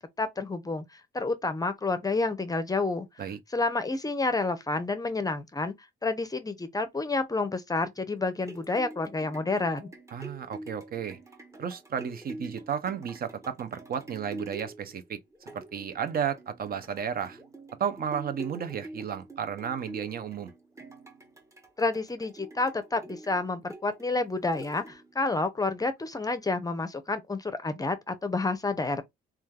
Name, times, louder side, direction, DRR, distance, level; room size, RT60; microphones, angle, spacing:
voice 1, 0.2-3.1 3.5-5.7 6.0-9.9 21.8-29.0, left 3 dB, 20° left, 0.5 m, -29 dB
sound 1, 8.2-25.3 25.8-25.9, right 2 dB, 15° right, 0.7 m, -46 dB
voice 2, 10.1-11.2 11.6-15.2 15.5-17.4 17.8-20.5, right 8 dB, 50° right, 0.5 m, -33 dB
3.2 x 2.3 x 2.2 m
cardioid pair, 90°, 20 cm